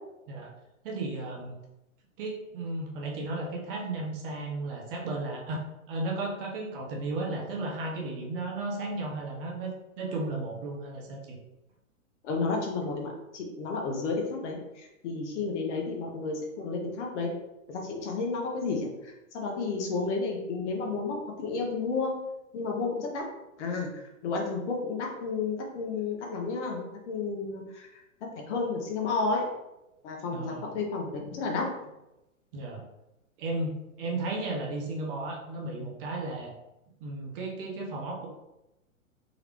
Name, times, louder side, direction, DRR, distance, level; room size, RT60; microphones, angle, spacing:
voice 1, 0.8-1.6 2.2-5.6 5.9-11.4 30.3-30.8 32.5-32.8 33.4-36.5 37.0-38.3, right 2 dB, 40° right, 0 dB, 1.0 m, -34 dB
voice 2, 12.2-17.3 17.7-22.1 22.5-23.2 23.6-23.9 24.2-27.9 28.2-29.5 30.0-31.7, left 4 dB, 55° left, 1 dB, 1.2 m, -32 dB
3.9 x 3.2 x 3.1 m, 0.93 s
hypercardioid pair, 125°, 42 cm